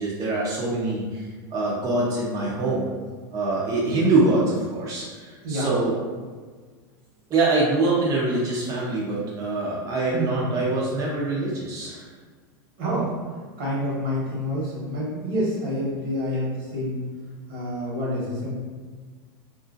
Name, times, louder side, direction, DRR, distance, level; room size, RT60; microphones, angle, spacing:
voice 1, 0.0-2.9 3.3-5.9 7.3-12.1, right 2 dB, 30° right, -6 dB, 0.6 m, -24 dB
voice 2, 10.1-10.6 12.8-13.1 13.6-17.0 17.5-18.5, equal, 75° right, -5 dB, 1.2 m, -27 dB
2.8 x 2.5 x 2.5 m, 1.5 s
supercardioid pair, 130°, 12 cm